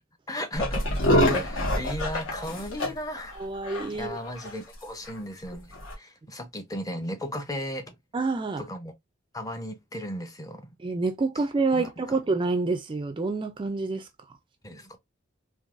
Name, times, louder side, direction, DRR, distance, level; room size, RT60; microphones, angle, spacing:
voice 1, 0.3-0.8 1.2-3.4 3.9-8.0 8.6-8.9 9.3-10.7 11.7-12.2 14.6-15.0, equal, 15° left, 0.6 m, -36 dB
sound 1, 0.6-2.9 3.2-3.3 3.6-3.9 4.2-4.5 5.1-5.2 5.7-5.9, left 1 dB, 70° left, 1.4 m, -25 dB
voice 2, 1.1-1.4 3.3-4.2 8.1-8.7 10.8-14.1, right 3 dB, 25° right, 0.3 m, -28 dB
3.8 x 2.6 x 2.5 m
head